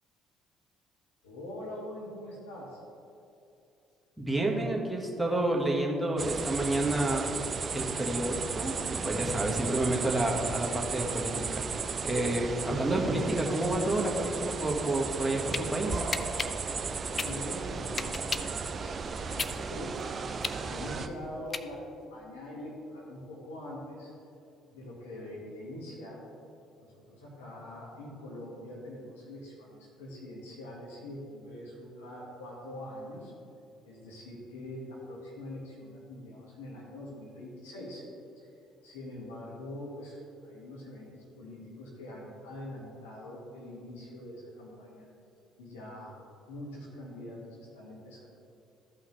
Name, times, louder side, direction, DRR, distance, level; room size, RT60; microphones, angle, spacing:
voice 1, 1.2-2.8 17.1-20.0 20.6-24.2 24.7-26.2 26.8-33.3 33.8-38.1 38.4-38.5 38.8-45.1 45.6-46.2 46.5-48.3, left 1 dB, 85° left, -4 dB, 1.9 m, -43 dB
voice 2, 4.2-7.3 7.7-11.6 12.0-16.0, right 1 dB, 5° right, -2 dB, 1.7 m, -29 dB
sound 1, 6.2-21.1, right 5 dB, 40° right, 0.6 m, -35 dB
sound 2, 15.5-15.6 16.1-18.6 19.0-22.0, left 4 dB, 35° left, 0.5 m, -35 dB
14.0 x 5.7 x 3.3 m, 2.8 s
hypercardioid pair, 55°, 0 cm